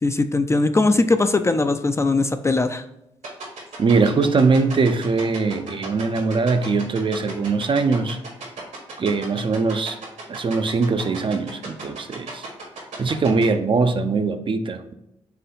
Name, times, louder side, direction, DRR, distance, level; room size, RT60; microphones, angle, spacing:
voice 1, 0.0-2.8, left 3 dB, 20° left, 0.4 m, -20 dB
sound 1, 3.2-13.4, right 5 dB, 70° right, 1.5 m, -35 dB
voice 2, 3.8-8.2 9.0-10.0 10.3-12.5 13.0-14.9, right 4 dB, 40° right, 0.5 m, -21 dB
4.6 x 3.0 x 3.4 m
supercardioid pair, 50°, 13 cm